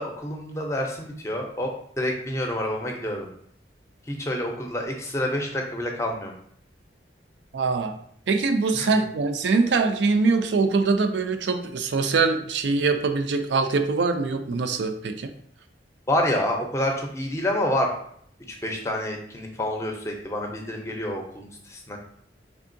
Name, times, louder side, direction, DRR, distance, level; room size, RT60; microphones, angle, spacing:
voice 1, 0.0-1.7 2.0-3.3 4.1-6.3 8.7-8.9 16.1-17.9 18.5-22.0, left 1 dB, 15° left, 2 dB, 0.5 m, -28 dB
voice 2, 7.5-8.0 8.3-15.3, right 4 dB, 80° right, 7 dB, 0.4 m, -23 dB
3.6 x 3.5 x 2.6 m, 0.65 s
head